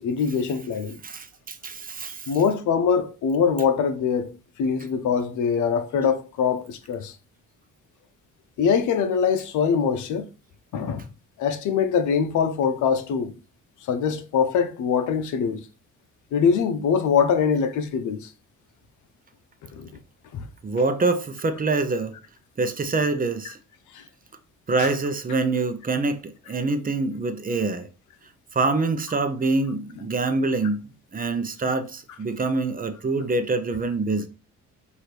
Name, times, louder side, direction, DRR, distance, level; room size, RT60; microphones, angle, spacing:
voice 1, 0.0-1.0 2.3-4.3 4.6-7.1 8.6-10.3 10.7-11.0 11.4-13.3 13.9-15.6 16.3-18.3 19.7-19.9 20.3-20.5 23.5-23.6 23.9-24.0 24.8-24.9, left 6 dB, 75° left, 0.7 m, -23 dB
voice 2, 1.0-2.4 20.6-22.1 22.6-23.6 24.7-27.9 28.5-30.8 31.1-34.3, right 3 dB, 30° right, 0.7 m, -25 dB
6.0 x 2.7 x 3.3 m
cardioid pair, 90°, 30 cm